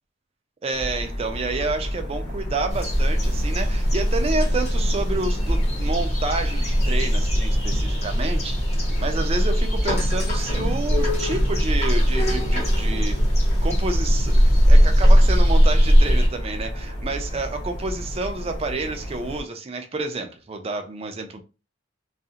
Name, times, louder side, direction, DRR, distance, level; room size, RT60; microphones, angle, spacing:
voice 1, 0.6-13.2 13.6-21.4, right 3 dB, 30° right, 0.4 m, -29 dB
sound 1, 0.7-19.4, equal, 60° left, 1.0 m, -32 dB
sound 2, 2.7-16.3, equal, 35° left, 0.9 m, -19 dB
2.4 x 2.0 x 2.7 m
head